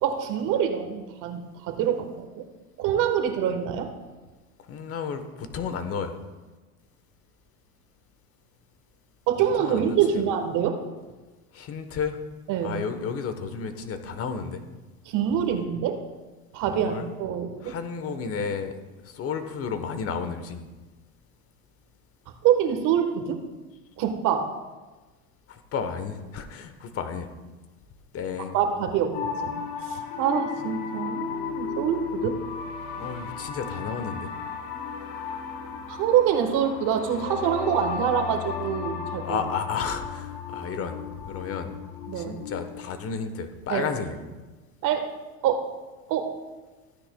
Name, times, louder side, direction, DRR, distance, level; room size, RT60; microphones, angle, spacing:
voice 1, 0.0-2.4 2.8-3.9 9.3-10.8 12.5-12.8 15.0-16.0 16.5-17.7 22.4-23.4 24.0-24.5 28.5-29.5 29.8-32.4 35.9-39.4 42.1-42.4 43.7-43.8 44.8-45.1 45.4-45.6 46.1-46.3, right 9 dB, 45° right, 6 dB, 1.4 m, -25 dB
voice 2, 4.6-6.2 9.6-10.3 11.5-12.2 12.6-14.6 16.7-17.1 17.6-18.8 19.0-20.7 25.5-27.3 28.1-28.6 33.0-34.3 39.2-41.0 41.2-41.7 42.1-44.2, left 6 dB, 30° left, 9 dB, 1.1 m, -32 dB
sound 1, 29.1-42.7, left 6 dB, 50° left, 1.4 m, -35 dB
15.5 x 9.8 x 2.3 m, 1.2 s
supercardioid pair, 125°, 44 cm